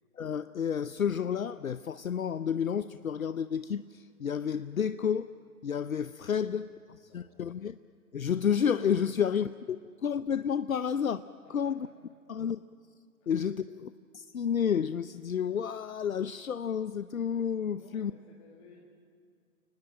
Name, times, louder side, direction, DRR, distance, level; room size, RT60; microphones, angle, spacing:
voice 1, 0.2-5.3 5.6-6.7 7.1-7.8 8.1-11.2 11.5-11.8 12.3-12.6 13.3-18.1, left 7 dB, 65° left, 0.8 m, -30 dB
voice 2, 6.3-6.6 7.0-7.5 9.0-9.1 11.4-12.0 13.2-13.5 17.7-18.8, left 5 dB, 20° left, 2.2 m, -58 dB
29.5 x 19.5 x 7.8 m
figure-of-eight pair, 145°, 44 cm